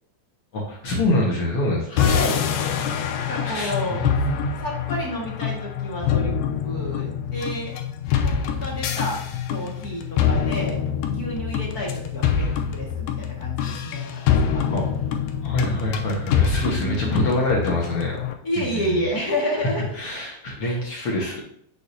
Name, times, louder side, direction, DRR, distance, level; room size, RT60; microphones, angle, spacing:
voice 1, 0.5-2.1 3.4-4.5 14.7-14.8 15.4-18.1 18.7-19.0 20.0-21.4, left 1 dB, 55° left, -2 dB, 1.6 m, -25 dB
voice 2, 1.9-2.5 3.1-4.0 4.6-6.3 6.6-7.7 8.2-9.2 9.5-10.8 11.1-14.1 14.4-14.6 16.6-17.1 18.4-19.8 20.6-20.8, equal, 35° left, -4 dB, 1.5 m, -30 dB
sound 1, 2.0-18.3, left 8 dB, 85° left, 2.5 m, -25 dB
8.7 x 6.7 x 2.7 m, 0.72 s
omnidirectional pair, 4.2 m